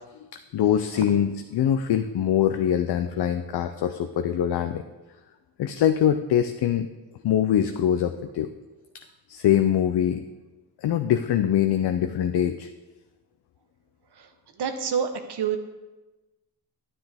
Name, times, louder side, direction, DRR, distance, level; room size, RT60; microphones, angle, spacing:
voice 1, 0.5-4.8 5.6-6.9 7.2-8.5 9.3-10.2 10.8-12.7, left 10 dB, 80° left, 8 dB, 0.5 m, -23 dB
voice 2, 14.6-15.6, right 7 dB, 85° right, 7 dB, 1.0 m, -28 dB
10.0 x 9.3 x 3.5 m, 1.1 s
cardioid pair, 80°, 39 cm